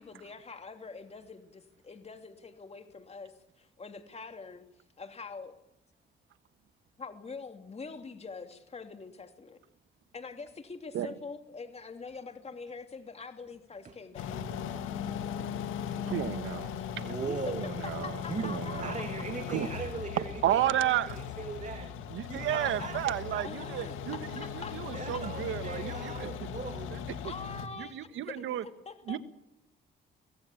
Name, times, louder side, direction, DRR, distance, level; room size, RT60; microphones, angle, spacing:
voice 1, 0.0-4.7 5.0-5.6 7.0-9.6 10.1-14.4 17.3-17.4 17.6-19.1 19.6-19.9 20.4-20.5 22.6-23.0 23.4-25.2 26.2-26.4 26.6-26.8 27.2-29.2, left 4 dB, 30° left, 6 dB, 2.9 m, -45 dB
sound 1, 14.1-27.7, left 8 dB, 90° left, 2.0 m, -38 dB
voice 2, 16.0-17.1 17.5-19.0 19.5-19.7 20.2-21.2 22.1-26.3 26.9-27.0 27.8-28.6 29.1-29.2, right 12 dB, 80° right, 12 dB, 1.4 m, -32 dB
voice 3, 16.9-17.6 18.3-18.5 18.8-21.9 22.3-23.7 24.9-27.0, right 5 dB, 40° right, 7 dB, 2.1 m, -39 dB
24.5 x 17.5 x 8.5 m, 0.83 s
cardioid pair, 90°, 20 cm